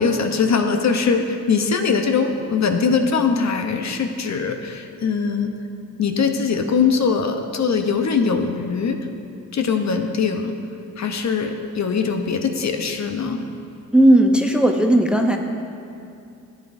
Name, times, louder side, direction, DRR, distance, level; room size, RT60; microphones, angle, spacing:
voice 1, 0.0-5.5 6.0-9.0 9.5-10.5 11.0-13.4, left 5 dB, 50° left, 5 dB, 0.8 m, -21 dB
voice 2, 13.9-15.4, right 1 dB, 5° right, 4 dB, 0.6 m, -15 dB
11.0 x 8.2 x 2.6 m, 2.5 s
supercardioid pair, 60°, 37 cm